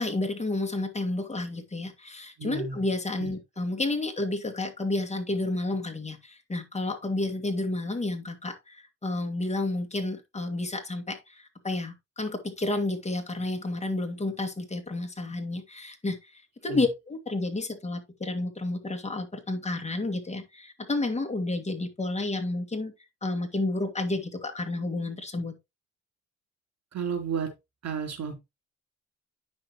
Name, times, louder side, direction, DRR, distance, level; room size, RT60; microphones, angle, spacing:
voice 1, 0.0-22.9 23.2-25.5, left 2 dB, 20° left, 2.4 m, -31 dB
voice 2, 2.4-2.8 3.2-3.3 16.6-16.8 26.9-27.5 27.8-28.3, right 6 dB, 60° right, 4.0 m, -32 dB
9.5 x 6.3 x 3.1 m
cardioid pair, 90°, 30 cm